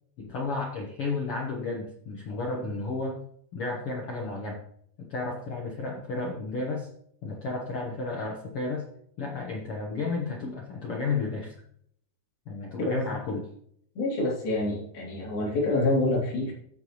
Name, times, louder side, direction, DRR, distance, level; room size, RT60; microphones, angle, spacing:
voice 1, 0.2-3.2 3.5-4.6 5.0-6.9 7.2-8.9 9.2-11.5 12.5-13.5, left 3 dB, 85° left, -1 dB, 1.2 m, -32 dB
voice 2, 14.0-16.5, left 2 dB, 70° left, -4 dB, 5.1 m, -27 dB
15.0 x 5.5 x 3.1 m, 0.67 s
omnidirectional pair, 4.5 m